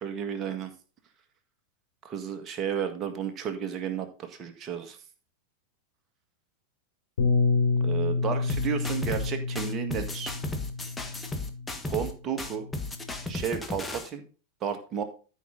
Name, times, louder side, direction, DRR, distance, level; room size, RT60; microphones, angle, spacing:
voice 1, 0.0-0.7 2.0-5.0 7.8-10.3 11.9-12.7 13.3-14.3 14.6-15.0, right 8 dB, 30° right, 6 dB, 1.8 m, -32 dB
Bass guitar, 7.2-11.7 12.5-13.4, left 4 dB, 65° left, 2.8 m, -29 dB
sound 1, 8.5-9.3 9.6-12.1 12.4-14.1, left 2 dB, 10° left, 1.3 m, -35 dB
13.0 x 5.8 x 3.8 m, 0.36 s
figure-of-eight pair, 90°, 0 cm